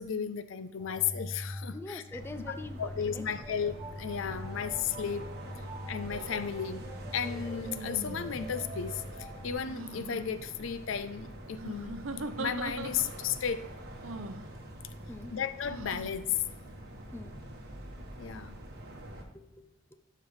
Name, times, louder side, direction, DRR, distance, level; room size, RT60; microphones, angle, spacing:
voice 1, 0.0-2.2 2.5-5.3 5.6-6.9 7.1-12.0 12.4-13.6 15.3-16.5 18.2-18.6, left 7 dB, 65° left, 13 dB, 0.4 m, -34 dB
sound 1, 0.8-9.5, equal, 20° right, 1.3 m, -43 dB
voice 2, 1.7-3.3 15.1-15.4 17.1-17.5 19.3-20.0, left 2 dB, 10° left, 9 dB, 0.5 m, -44 dB
sound 2, 2.1-19.2, right 1 dB, 50° right, 1.4 m, -46 dB
sound 3, 6.1-6.3 7.6-8.5 9.6-10.2 11.6-13.3 14.0-14.5 15.7-16.1, right 2 dB, 75° right, 0.7 m, -41 dB
12.0 x 5.8 x 3.1 m, 0.87 s
head